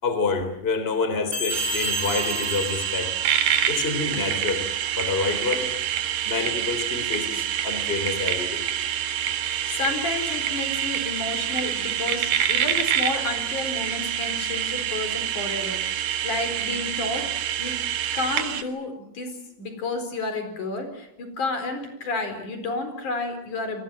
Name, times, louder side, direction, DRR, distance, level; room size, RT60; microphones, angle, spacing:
voice 1, 0.0-3.1 3.7-4.7 5.0-5.7 6.2-8.6 12.5-12.7, left 4 dB, 15° left, 9 dB, 3.5 m, -27 dB
sound 1, 1.3-3.9, left 1 dB, 35° right, 7.4 m, -31 dB
sound 2, 1.5-18.6, right 10 dB, 80° right, 3.4 m, -27 dB
voice 2, 9.7-15.8 16.2-17.3 17.6-17.8 18.1-23.8, left 3 dB, 65° left, 8 dB, 5.7 m, -31 dB
30.0 x 24.0 x 7.5 m, 0.77 s
omnidirectional pair, 3.8 m